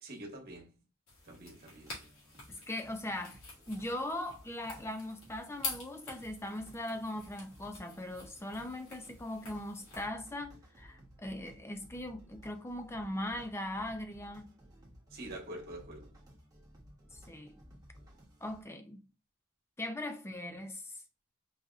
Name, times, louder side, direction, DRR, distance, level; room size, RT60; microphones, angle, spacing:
voice 1, 0.0-0.7 1.2-2.0 15.1-16.1, right 1 dB, 45° right, 1.2 m, -46 dB
sound 1, 1.1-10.1, left 3 dB, 75° left, 2.0 m, -47 dB
sound 2, 1.8-18.6, equal, 15° right, 1.0 m, -58 dB
voice 2, 2.5-3.4 3.7-14.5 17.1-17.6 18.4-19.0 19.8-21.0, left 1 dB, 10° left, 0.5 m, -40 dB
4.7 x 2.8 x 2.4 m
head